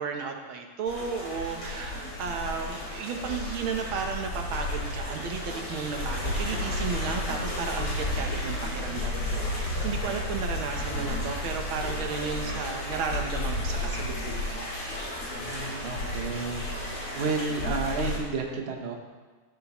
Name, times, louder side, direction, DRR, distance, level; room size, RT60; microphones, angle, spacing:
voice 1, 0.0-14.7, right 5 dB, 70° right, 4 dB, 1.7 m, -34 dB
sound 1, 0.9-18.2, left 1 dB, 65° left, 3.6 m, -32 dB
voice 2, 15.3-16.6 17.1-18.9, right 4 dB, 45° right, 2 dB, 0.8 m, -31 dB
14.5 x 7.7 x 3.0 m, 1.4 s
omnidirectional pair, 2.4 m